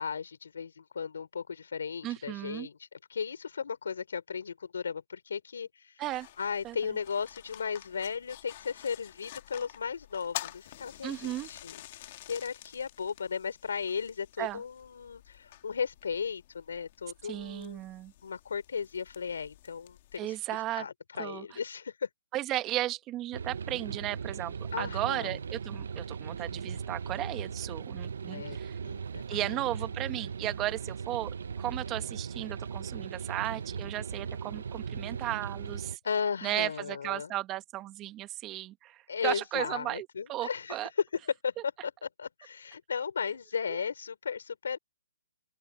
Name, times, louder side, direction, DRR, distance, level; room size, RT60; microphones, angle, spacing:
voice 1, 0.0-2.8 3.1-6.0 6.4-17.9 18.2-20.4 20.8-22.1 24.7-25.4 28.3-29.6 36.0-37.3 39.1-40.8 41.2-41.5 41.8-44.8, left 6 dB, 70° left, 4.4 m, -36 dB
voice 2, 2.0-2.7 6.0-6.3 6.6-6.8 11.0-11.5 14.4-14.6 17.2-18.1 20.2-20.9 21.2-21.4 22.3-28.8 29.3-36.0 36.4-40.9, right 15 dB, 20° right, 1.7 m, -35 dB
sound 1, 6.0-20.2, left 15 dB, 40° left, 2.6 m, -48 dB
sound 2, 23.3-36.0, right 6 dB, 65° right, 0.8 m, -38 dB
open air
hypercardioid pair, 155°, 0 cm